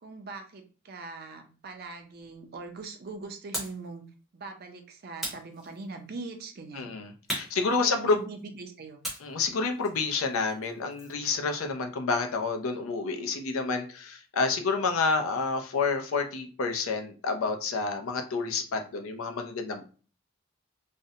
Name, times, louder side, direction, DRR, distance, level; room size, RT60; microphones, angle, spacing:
voice 1, 0.0-4.0 4.3-6.9 7.6-9.0, right 3 dB, 45° right, 5 dB, 0.4 m, -42 dB
sound 1, 3.5-3.9 5.2-6.1 7.3-8.4 9.0-11.3, right 1 dB, ahead, 0.7 m, -38 dB
voice 2, 6.7-8.2 9.2-19.9, left 4 dB, 80° left, 5 dB, 0.5 m, -29 dB
2.5 x 2.1 x 2.7 m, 0.38 s
head